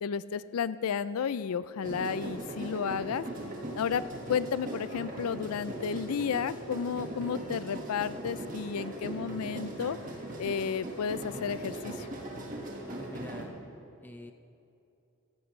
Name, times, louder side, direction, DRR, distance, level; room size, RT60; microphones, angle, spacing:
voice 1, 0.0-3.3 3.7-4.0 4.3-10.0 10.4-12.1, left 7 dB, 80° left, 15 dB, 0.4 m, -32 dB
sound 1, 1.8-13.5, right 1 dB, 35° right, 1.6 m, -39 dB
voice 2, 13.0-13.6 14.0-14.3, left 1 dB, 10° left, 7 dB, 0.4 m, -45 dB
16.0 x 15.5 x 3.2 m, 2.7 s
head